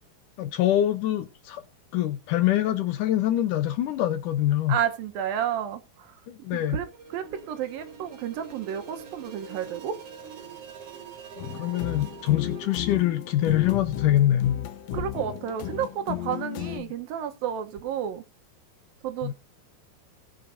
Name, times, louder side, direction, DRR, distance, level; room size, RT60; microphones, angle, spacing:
voice 1, 0.4-1.6 1.9-4.8 6.3-6.8 11.4-14.6 16.8-16.9 19.2-19.3, left 12 dB, 70° left, 2.2 m, -24 dB
voice 2, 4.7-6.1 6.7-6.9 7.1-10.0 14.9-18.2 19.0-19.3, right 9 dB, 75° right, 2.8 m, -31 dB
sound 1, 6.7-12.7, right 6 dB, 45° right, 2.7 m, -44 dB
sound 2, 11.4-16.8, left 11 dB, 90° left, 1.5 m, -34 dB
20.0 x 7.4 x 2.7 m
omnidirectional pair, 4.2 m